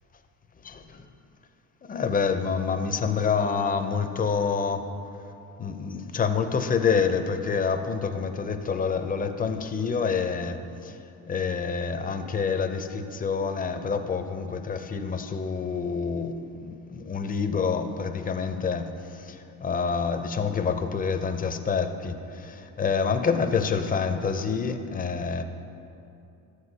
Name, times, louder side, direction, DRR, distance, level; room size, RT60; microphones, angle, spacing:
voice 1, 0.6-1.1 1.9-4.9 5.6-11.0 11.3-25.4, left 5 dB, 20° left, 7 dB, 0.5 m, -27 dB
13.0 x 8.0 x 2.7 m, 2.7 s
cardioid pair, 105°, 41 cm